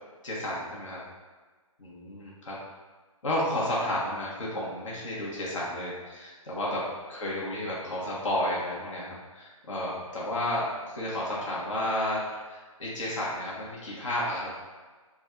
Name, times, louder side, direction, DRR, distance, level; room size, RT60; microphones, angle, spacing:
voice 1, 0.2-1.0 1.8-2.6 3.2-14.5, left 1 dB, 60° left, -6 dB, 1.4 m, -32 dB
4.0 x 2.5 x 4.4 m, 1.4 s
figure-of-eight pair, 140°, 18 cm